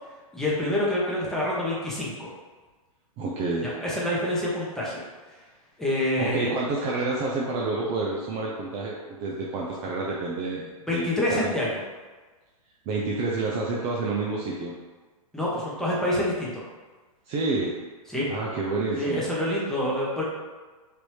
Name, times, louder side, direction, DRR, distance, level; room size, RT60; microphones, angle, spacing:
voice 1, 0.3-2.3 3.6-5.0 5.8-6.5 10.9-11.8 15.3-16.6 18.1-18.2 19.0-20.2, left 1 dB, ahead, -7 dB, 0.8 m, -27 dB
voice 2, 3.2-3.8 6.2-11.5 12.9-14.7 17.3-17.7 18.3-19.2, right 3 dB, 30° right, -3 dB, 0.4 m, -29 dB
3.2 x 2.6 x 3.1 m, 1.3 s
hypercardioid pair, 130°, 19 cm